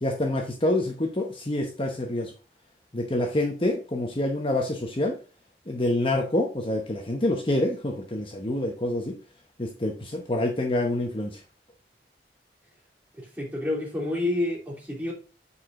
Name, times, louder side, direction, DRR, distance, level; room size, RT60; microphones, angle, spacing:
voice 1, 0.0-2.3 2.9-5.2 5.7-9.2 9.6-11.4, left 1 dB, 30° left, 0.9 m, -27 dB
voice 2, 13.2-15.1, left 2 dB, 10° right, 3.0 m, -29 dB
8.5 x 4.9 x 3.8 m
head